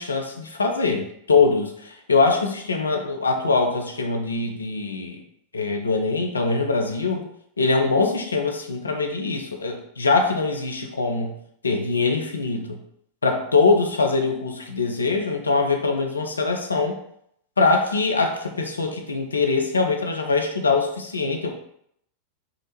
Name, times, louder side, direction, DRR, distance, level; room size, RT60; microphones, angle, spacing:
voice 1, 0.0-5.2 5.5-7.2 7.6-11.4 11.6-12.8 13.2-17.0 17.6-21.5, left 4 dB, 75° left, 3 dB, 0.4 m, -23 dB
3.6 x 2.0 x 3.0 m, 0.71 s
figure-of-eight pair, 90°, 0 cm